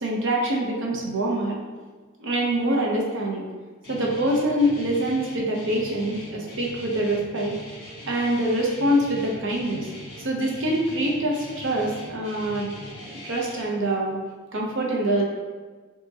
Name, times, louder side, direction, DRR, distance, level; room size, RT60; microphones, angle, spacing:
voice 1, 0.0-1.6 2.2-3.4 3.9-7.5 8.1-9.9 10.2-12.7 12.9-14.2 14.5-15.2, right 1 dB, 65° right, -2 dB, 0.7 m, -25 dB
Guitar, 3.8-13.6, left 1 dB, 60° left, 1.4 m, -41 dB
4.5 x 2.8 x 2.8 m, 1.4 s
head